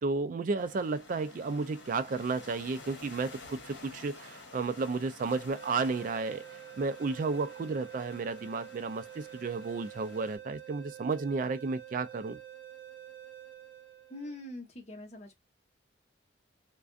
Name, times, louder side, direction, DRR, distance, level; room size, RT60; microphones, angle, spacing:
voice 1, 0.0-6.4 6.8-12.4, right 4 dB, 45° right, 0.3 m, -32 dB
sound 1, 0.6-10.4, left 3 dB, 70° left, 0.9 m, -51 dB
sound 2, 5.5-14.4, right 10 dB, 10° right, 0.6 m, -48 dB
voice 2, 14.1-15.4, left 1 dB, 35° left, 0.9 m, -43 dB
2.5 x 2.3 x 2.3 m
head